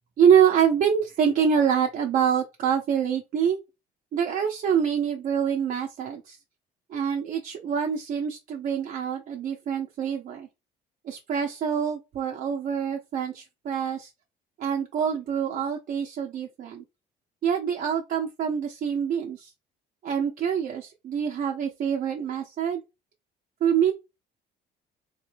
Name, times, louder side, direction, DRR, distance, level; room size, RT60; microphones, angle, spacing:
voice 1, 0.2-3.6 4.1-6.4 6.9-10.5 11.0-14.1 14.6-16.8 17.4-19.5 20.0-22.8 23.6-23.9, right 8 dB, 55° right, 0.7 m, -25 dB
3.6 x 3.3 x 2.2 m
cardioid pair, 110°, 17 cm